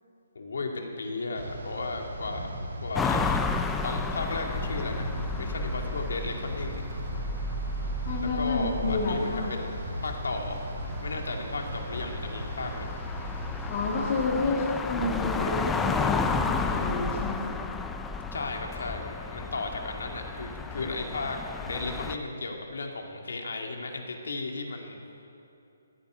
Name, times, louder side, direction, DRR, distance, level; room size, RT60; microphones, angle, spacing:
voice 1, 0.3-2.5 2.8-3.4 3.8-6.8 8.2-10.6 11.0-12.9 18.3-21.4 21.6-24.9, left 3 dB, 70° left, 2 dB, 2.2 m, -35 dB
sound 1, 1.4-14.3, right 1 dB, 65° right, 4.2 m, -37 dB
sound 2, 2.9-22.2, left 4 dB, 5° left, 0.3 m, -33 dB
voice 2, 8.1-9.5 13.7-17.4, left 3 dB, 25° left, -2 dB, 2.0 m, -29 dB
14.0 x 10.0 x 9.7 m, 2.7 s
hypercardioid pair, 180°, 0 cm